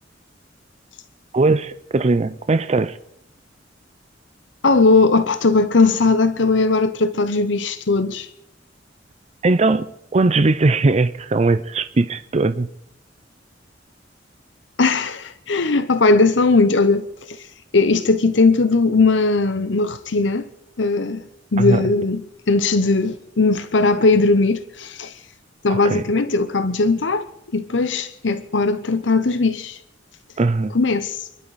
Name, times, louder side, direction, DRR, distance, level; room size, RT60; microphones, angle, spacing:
voice 1, 1.3-3.0 9.4-12.7 21.6-21.8 25.7-26.0 30.4-30.8, right 3 dB, 35° right, 0.5 m, -19 dB
voice 2, 4.6-8.3 14.8-17.5 17.7-20.5 20.8-25.1 25.6-27.3 27.5-29.8 30.7-31.3, left 3 dB, 75° left, 0.9 m, -18 dB
28.5 x 12.0 x 4.1 m
head